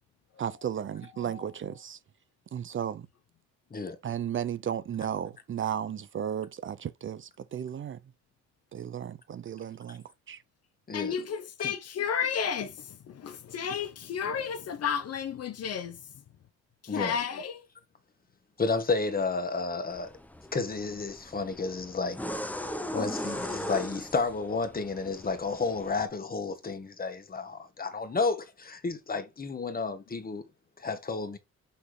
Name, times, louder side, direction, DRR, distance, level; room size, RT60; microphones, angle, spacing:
voice 1, 0.4-2.0 2.5-3.1 4.0-8.0 8.7-10.4, right 9 dB, 40° right, 0.6 m, -34 dB
voice 2, 10.9-16.2 16.8-17.7, left 7 dB, 55° left, 0.8 m, -32 dB
voice 3, 18.6-20.1 20.5-22.2 22.9-30.4 30.8-31.4, left 4 dB, 30° left, 1.5 m, -31 dB
sound 1, 19.9-26.0, equal, 5° left, 0.8 m, -39 dB
6.1 x 5.6 x 3.2 m
cardioid pair, 90°, 30 cm